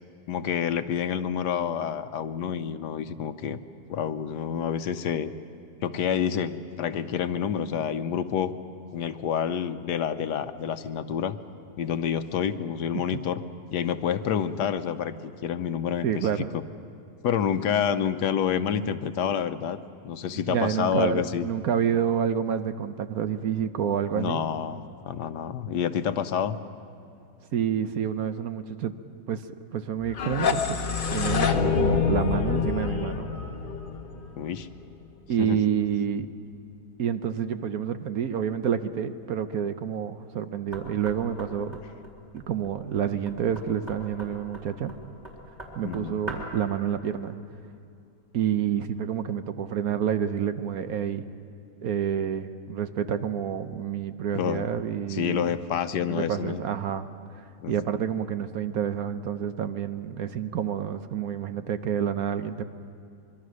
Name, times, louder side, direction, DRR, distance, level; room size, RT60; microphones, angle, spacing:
voice 1, 0.3-3.6 3.9-5.3 5.8-8.5 8.9-11.4 11.8-13.4 13.7-16.6 17.2-19.8 20.0-21.5 24.1-26.6 34.4-34.7 35.4-35.6 45.8-46.2 54.3-54.7 55.1-56.6 57.6-57.7, left 8 dB, 75° left, 11 dB, 1.4 m, -28 dB
voice 2, 16.0-16.5 20.5-24.4 27.5-29.0 29.3-29.4 29.7-30.8 31.1-33.3 35.3-36.3 37.0-41.8 42.3-44.9 45.8-47.4 48.3-51.2 51.8-55.5 56.0-62.6, right 8 dB, 65° right, 10 dB, 1.2 m, -28 dB
sound 1, 30.0-34.9, left 5 dB, 35° left, 1.0 m, -26 dB
Knock, 40.7-46.6, right 1 dB, 20° right, 4.1 m, -42 dB
25.0 x 23.0 x 6.4 m, 2.6 s
omnidirectional pair, 1.8 m